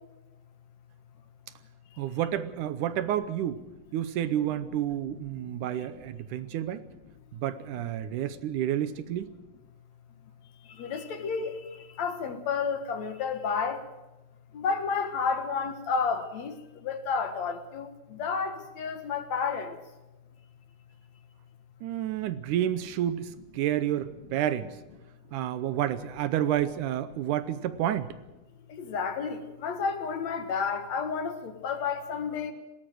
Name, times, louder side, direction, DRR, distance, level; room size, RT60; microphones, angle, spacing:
voice 1, 2.0-3.6 3.9-6.8 7.3-9.3 21.8-24.8 25.3-28.2, right 11 dB, 75° right, 14 dB, 2.2 m, -30 dB
voice 2, 10.8-11.5 12.0-13.8 14.5-16.6 16.8-19.7 28.7-32.5, left 5 dB, 60° left, 8 dB, 2.5 m, -31 dB
20.0 x 18.0 x 7.7 m, 1.1 s
omnidirectional pair, 3.9 m